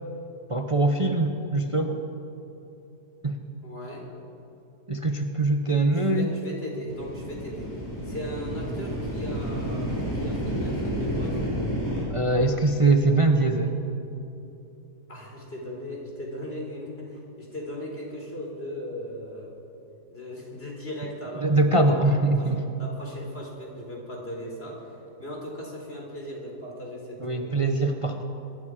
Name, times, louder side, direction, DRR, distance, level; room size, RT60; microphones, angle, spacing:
voice 1, 0.5-2.0 3.2-3.4 4.9-6.3 12.1-13.7 21.4-22.6 27.2-28.2, right 2 dB, 25° right, 5 dB, 0.9 m, -22 dB
voice 2, 3.6-4.1 5.9-11.6 15.1-19.5 20.1-21.5 21.9-22.5 22.8-27.7, left 1 dB, 35° left, -1 dB, 4.5 m, -38 dB
sound 1, 6.9-12.1, equal, 15° left, 6.2 m, -30 dB
24.5 x 21.5 x 5.1 m, 2.9 s
omnidirectional pair, 1.7 m